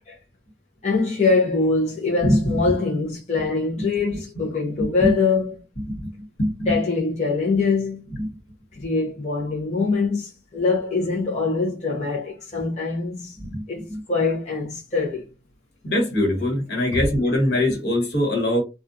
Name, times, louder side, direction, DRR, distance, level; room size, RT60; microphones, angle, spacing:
voice 1, 0.8-5.6 6.7-8.0 8.7-13.4 13.7-15.3 16.9-17.0, left 4 dB, 40° left, 0.7 m, -23 dB
voice 2, 15.8-18.6, left 1 dB, 75° left, 1.3 m, -21 dB
2.4 x 2.3 x 2.6 m
head